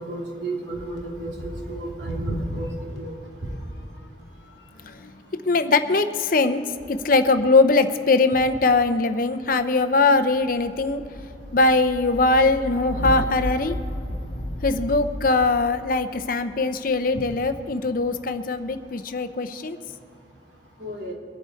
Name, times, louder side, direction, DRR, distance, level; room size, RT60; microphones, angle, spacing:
voice 1, 0.0-2.7 3.0-3.1 20.8-21.1, right 1 dB, 75° right, -3 dB, 3.1 m, -31 dB
sound 1, 0.9-2.3 2.5-17.6 18.3-18.9, left 1 dB, 65° left, 1.1 m, -37 dB
voice 2, 5.5-6.6 6.9-11.0 11.5-13.8 14.6-19.8, left 3 dB, 50° left, 9 dB, 0.6 m, -21 dB
23.0 x 8.0 x 4.5 m, 2.6 s
head